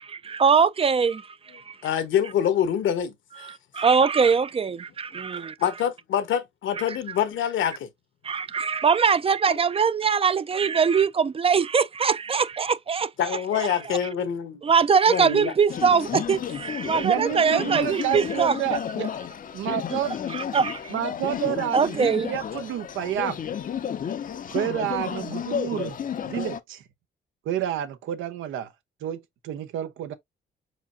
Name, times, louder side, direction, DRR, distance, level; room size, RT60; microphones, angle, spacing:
voice 1, 0.1-1.8 3.4-5.6 6.9-7.0 8.2-14.0 14.6-18.6 20.3-20.9 21.7-22.3, right 6 dB, 30° right, 0.4 m, -22 dB
voice 2, 1.8-3.5 5.6-7.9 9.5-9.6 13.2-14.6 15.1-15.5, left 9 dB, 75° left, 1.1 m, -26 dB
sound 1, 15.7-26.6, left 8 dB, 45° left, 0.6 m, -32 dB
voice 3, 17.0-19.1 19.5-20.1 20.9-23.4 24.5-26.0 26.2-26.8 27.4-28.7 29.0-30.1, right 11 dB, 85° right, 0.8 m, -29 dB
4.9 x 4.2 x 2.6 m
cardioid pair, 90°, 20 cm